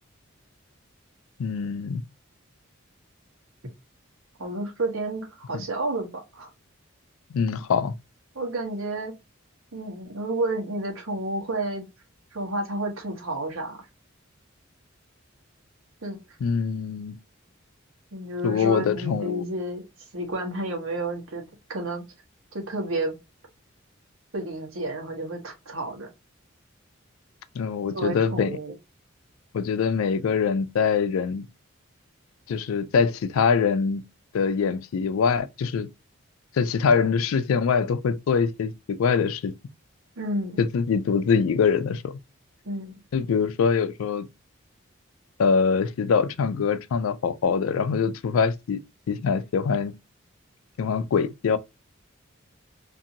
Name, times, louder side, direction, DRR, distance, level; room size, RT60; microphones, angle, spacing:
voice 1, 1.4-2.0 5.5-5.6 7.3-7.9 16.4-17.2 18.4-19.5 27.6-28.6 29.5-31.5 32.5-34.0 34.3-35.9 36.5-39.5 40.6-42.2 43.1-44.3 45.4-48.8 49.1-50.0 50.8-51.6, left 6 dB, 85° left, 0.4 m, -24 dB
voice 2, 4.4-6.5 8.3-9.1 9.7-11.9 12.3-13.8 16.0-16.2 18.1-19.8 20.1-22.0 22.5-23.2 24.3-26.1 27.9-28.7 40.2-40.6 42.6-43.0, right 2 dB, 80° right, 1.0 m, -31 dB
2.6 x 2.5 x 2.7 m
head